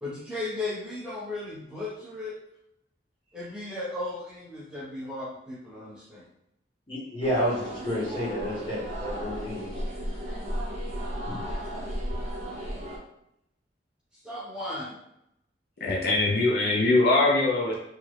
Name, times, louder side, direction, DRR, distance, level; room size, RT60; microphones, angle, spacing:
voice 1, 0.0-2.4 3.3-6.2 14.2-15.0, left 2 dB, 5° right, -7 dB, 0.9 m, -35 dB
voice 2, 6.9-9.7 11.3-11.4, equal, 25° left, -7 dB, 1.1 m, -30 dB
sound 1, 7.2-13.0, equal, 35° right, 0.6 m, -34 dB
voice 3, 15.8-17.7, left 2 dB, 55° left, -2 dB, 0.4 m, -22 dB
3.0 x 2.3 x 3.2 m, 0.78 s
head